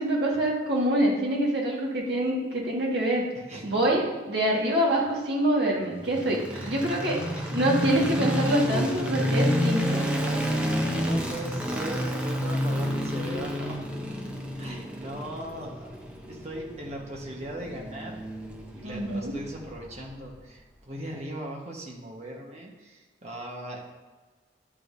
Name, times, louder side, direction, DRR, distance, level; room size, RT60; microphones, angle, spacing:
voice 1, 0.0-3.2 3.6-6.4 6.7-7.2 7.5-10.0 18.8-19.3, right 1 dB, 70° right, -3 dB, 1.8 m, -25 dB
sound 1, 6.0-20.2, equal, 5° right, 0.7 m, -30 dB
voice 2, 6.5-6.9 7.3-7.5 10.3-10.4 10.8-13.8 14.6-15.9 16.3-18.2 18.7-23.8, right 1 dB, 40° right, -1 dB, 1.3 m, -38 dB
10.5 x 5.0 x 2.7 m, 1.3 s
head